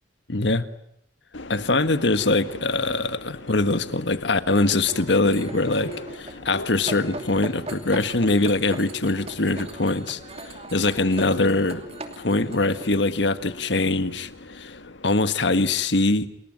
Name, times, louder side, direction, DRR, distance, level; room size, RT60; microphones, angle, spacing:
voice 1, 0.3-0.7 1.5-10.2 10.5-11.8 12.2-16.3, left 2 dB, 70° left, 12 dB, 1.6 m, -23 dB
Subway metro underground, 1.3-15.2, left 2 dB, 90° left, 1.8 m, -41 dB
sound 1, 4.5-12.9, right 2 dB, 35° right, 2.6 m, -40 dB
29.0 x 21.5 x 9.2 m, 0.76 s
head